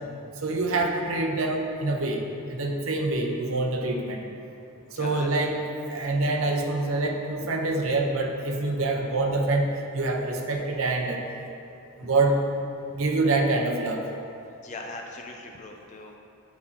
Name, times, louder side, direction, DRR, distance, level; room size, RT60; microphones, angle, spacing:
voice 1, 0.4-2.2 2.5-4.2 5.0-5.6 5.9-11.2 12.0-12.4 13.0-14.0, right 2 dB, 70° right, 1 dB, 0.7 m, -25 dB
voice 2, 5.0-5.3 12.0-12.1 12.9-13.2 14.6-16.2, left 2 dB, 35° left, 2 dB, 0.4 m, -41 dB
9.3 x 4.2 x 2.7 m, 2.7 s
head